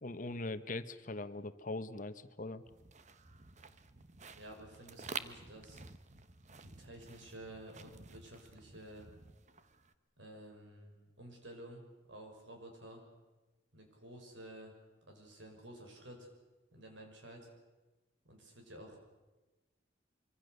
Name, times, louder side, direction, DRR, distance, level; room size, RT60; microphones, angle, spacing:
voice 1, 0.0-2.6, left 2 dB, 45° left, 11 dB, 1.1 m, -41 dB
sound 1, 2.7-9.9, right 5 dB, 40° right, 1.1 m, -50 dB
voice 2, 4.3-5.8 6.6-9.1 10.2-13.0 13.7-14.7 15.1-16.3 16.7-17.5 18.2-19.0, right 1 dB, 75° right, 2 dB, 6.2 m, -52 dB
25.0 x 24.5 x 6.8 m, 1.2 s
head